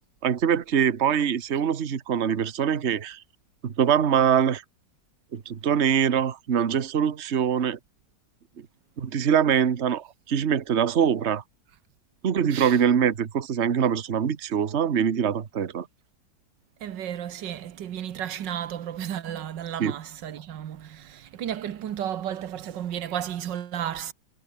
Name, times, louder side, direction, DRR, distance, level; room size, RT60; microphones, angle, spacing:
voice 1, 0.2-3.2 3.6-4.6 5.3-7.8 8.6-8.7 9.0-11.4 12.2-15.9 19.8-19.9, right 8 dB, 40° right, 1.4 m, -23 dB
voice 2, 16.8-24.1, right 10 dB, 90° right, 1.8 m, -33 dB
omnidirectional pair, 1.9 m